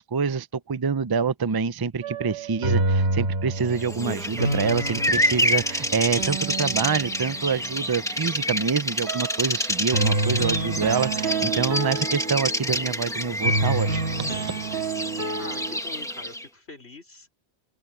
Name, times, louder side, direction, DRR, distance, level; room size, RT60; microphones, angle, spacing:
voice 1, 0.0-13.9 14.2-14.5, right 5 dB, 30° right, 0.5 m, -26 dB
sound 1, 2.0-8.0 9.1-9.4 9.9-12.9 13.4-15.8, right 2 dB, 75° right, 2.0 m, -28 dB
Bird vocalization bird call bird song, 3.8-16.5, left 1 dB, 5° left, 1.3 m, -28 dB
voice 2, 15.4-17.3, left 3 dB, 75° left, 5.6 m, -43 dB
open air
omnidirectional pair, 1.1 m